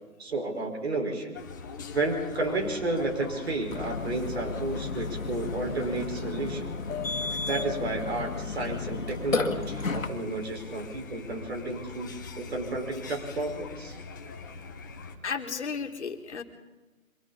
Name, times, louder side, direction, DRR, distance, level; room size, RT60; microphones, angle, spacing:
voice 1, 0.2-1.4 1.9-6.8 7.5-13.9, right 2 dB, 50° right, 3 dB, 5.1 m, -32 dB
sound 1, 1.3-15.2, left 4 dB, 15° left, 0.9 m, -42 dB
Burping eructation, 3.7-10.1, left 4 dB, 70° left, 2.0 m, -33 dB
voice 2, 15.2-16.4, left 5 dB, 55° left, 6 dB, 2.4 m, -33 dB
26.5 x 24.5 x 4.2 m, 1.2 s
figure-of-eight pair, 155°, 42 cm